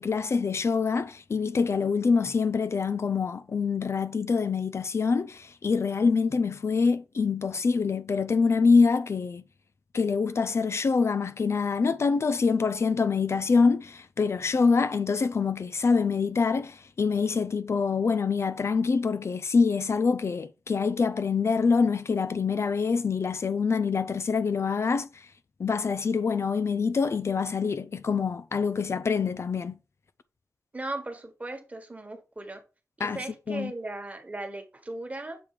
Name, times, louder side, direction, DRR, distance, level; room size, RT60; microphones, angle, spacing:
voice 1, 0.0-9.4 9.9-25.2 25.6-29.7 33.0-33.2 33.5-33.7, left 5 dB, 55° left, 0.4 m, -25 dB
voice 2, 30.7-32.6 33.0-35.4, right 2 dB, 25° right, 1.4 m, -37 dB
7.0 x 3.3 x 4.8 m
wide cardioid pair, 120°, 6 cm